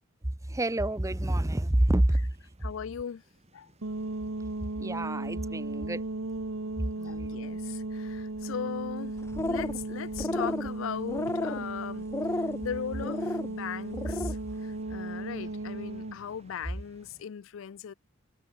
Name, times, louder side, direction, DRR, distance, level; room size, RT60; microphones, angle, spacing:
voice 1, 0.5-2.3 4.8-6.0 6.8-6.9, right 1 dB, 15° right, 0.7 m, -27 dB
sound 1, 0.7-17.2, right 1 dB, 30° right, 4.8 m, -60 dB
voice 2, 2.6-3.2 3.5-3.7 7.0-9.2 9.4-12.1 12.3-17.9, left 8 dB, 70° left, 0.4 m, -38 dB
sound 2, 3.8-16.2, right 2 dB, 70° right, 1.3 m, -36 dB
sound 3, 9.2-9.8 10.1-10.7 11.1-11.6 12.1-12.6 13.0-13.5 13.9-14.3, left 2 dB, 15° left, 0.5 m, -32 dB
head